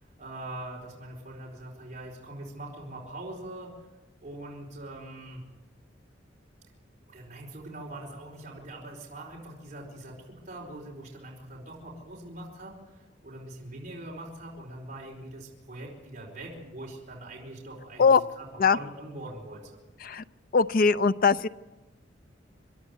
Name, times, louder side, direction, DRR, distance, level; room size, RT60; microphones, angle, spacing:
voice 1, 0.2-3.7 4.2-5.4 7.1-13.0 13.2-19.8, right 1 dB, 40° right, -3 dB, 4.7 m, -42 dB
voice 2, 20.5-21.5, left 5 dB, 50° left, 13 dB, 0.6 m, -21 dB
26.5 x 12.5 x 8.3 m, 1.1 s
head